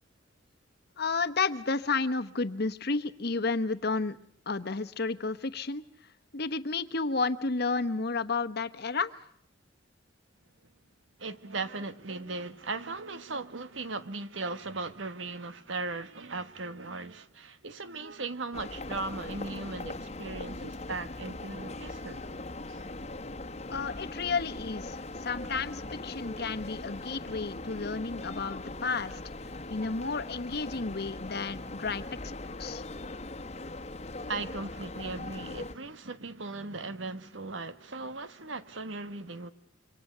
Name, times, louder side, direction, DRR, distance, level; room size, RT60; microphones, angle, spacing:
voice 1, 1.0-4.2 4.5-5.8 6.3-9.1 23.7-29.2 29.7-32.0 32.5-32.8, left 4 dB, 55° left, 1.1 m, -31 dB
voice 2, 11.2-22.3 22.7-22.9 34.3-39.5, right 3 dB, 75° right, 1.4 m, -38 dB
sound 1, 18.5-35.7, left 2 dB, 35° left, 1.3 m, -40 dB
27.0 x 24.5 x 6.7 m
head